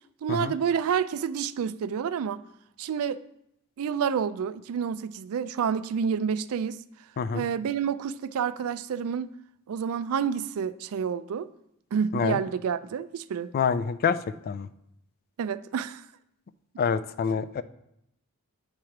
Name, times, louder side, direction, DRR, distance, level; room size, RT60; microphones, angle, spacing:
voice 1, 0.2-2.4 2.8-3.2 3.8-6.8 7.3-9.3 9.7-11.5 11.9-13.5 15.4-16.0, right 7 dB, 70° right, 0.3 m, -29 dB
voice 2, 13.5-14.2 14.5-14.7 16.8-17.6, left 6 dB, 45° left, 0.3 m, -26 dB
8.8 x 3.2 x 5.8 m
head